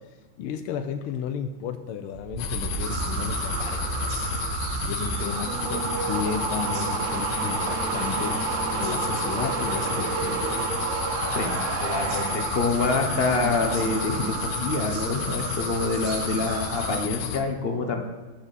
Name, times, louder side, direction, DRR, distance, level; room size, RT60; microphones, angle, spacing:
voice 1, 0.4-3.8 4.1-4.4 4.8-8.4 8.7-10.7, left 7 dB, 90° left, 7 dB, 1.5 m, -33 dB
sound 1, 2.1-14.8 15.1-15.5, right 5 dB, 50° right, 1.0 m, -31 dB
sound 2, 2.4-17.4, left 8 dB, 65° left, 1.3 m, -32 dB
sound 3, 2.8-17.1, right 11 dB, 80° right, 1.5 m, -35 dB
voice 2, 11.3-18.0, left 3 dB, 40° left, 4 dB, 0.9 m, -27 dB
12.5 x 8.5 x 4.1 m, 1.2 s
omnidirectional pair, 2.3 m